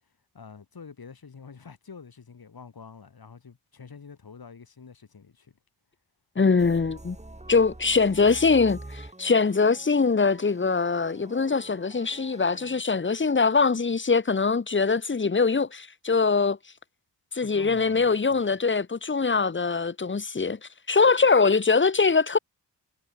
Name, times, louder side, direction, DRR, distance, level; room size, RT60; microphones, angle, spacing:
voice 1, 0.3-5.5 17.4-18.6, left 5 dB, 55° left, 3.7 m, -47 dB
voice 2, 6.4-7.2 7.5-16.6 17.3-20.6 20.9-22.4, left 4 dB, 25° left, 1.0 m, -22 dB
sound 1, 6.6-12.8, right 1 dB, 15° right, 3.4 m, -45 dB
cardioid pair, 45°, 43 cm